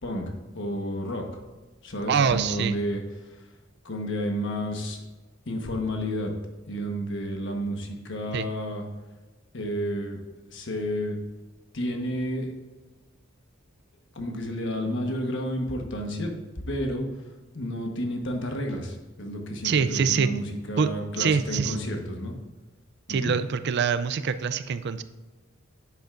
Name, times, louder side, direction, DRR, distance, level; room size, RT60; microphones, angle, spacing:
voice 1, 0.0-1.4 1.8-3.0 3.3-3.4 3.8-5.0 5.5-6.3 6.7-8.8 9.5-10.2 10.5-11.2 11.7-12.5 14.1-17.0 17.5-22.3 23.1-23.3, equal, 65° left, 3 dB, 1.3 m, -31 dB
voice 2, 2.1-2.8 8.3-8.5 19.6-20.3 20.8-20.9 21.2-21.8 23.1-25.0, right 6 dB, 55° right, 12 dB, 0.4 m, -24 dB
10.0 x 8.0 x 2.6 m, 1.2 s
head